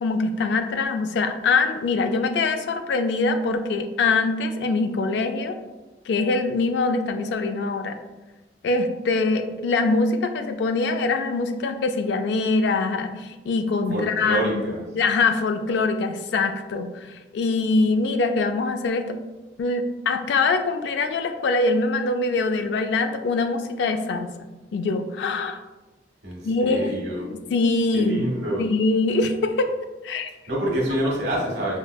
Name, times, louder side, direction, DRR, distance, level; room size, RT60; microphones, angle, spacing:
voice 1, 0.0-5.6 6.1-8.0 8.6-14.5 14.9-19.2 19.6-25.6 26.4-28.3 28.6-29.7 30.0-30.3, left 3 dB, 75° left, 7 dB, 0.3 m, -23 dB
voice 2, 13.9-14.8 26.2-27.3 27.9-28.6 30.5-31.8, right 1 dB, 80° right, -3 dB, 1.1 m, -27 dB
4.9 x 2.1 x 2.2 m, 1.1 s
head